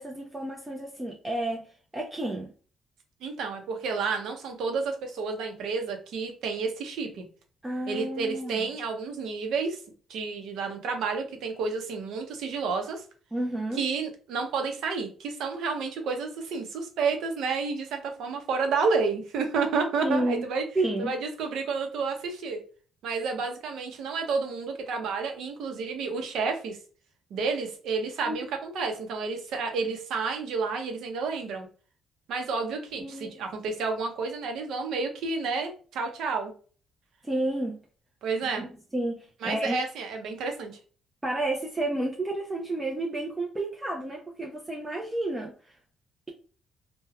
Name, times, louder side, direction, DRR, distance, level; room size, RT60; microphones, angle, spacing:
voice 1, 0.0-1.6 1.9-2.5 7.6-8.7 13.3-13.8 20.0-20.4 20.8-21.1 28.3-28.4 33.0-33.4 37.2-37.8 38.9-39.8 41.2-45.5, right 1 dB, 15° right, 0 dB, 0.5 m, -30 dB
voice 2, 3.2-7.2 7.9-9.8 10.1-13.0 13.7-20.6 21.0-22.6 23.0-26.8 27.3-31.7 32.3-36.5 38.2-38.7 39.4-40.7, right 4 dB, 80° right, 4 dB, 0.7 m, -30 dB
3.3 x 2.2 x 2.3 m, 0.39 s
cardioid pair, 90°, 0 cm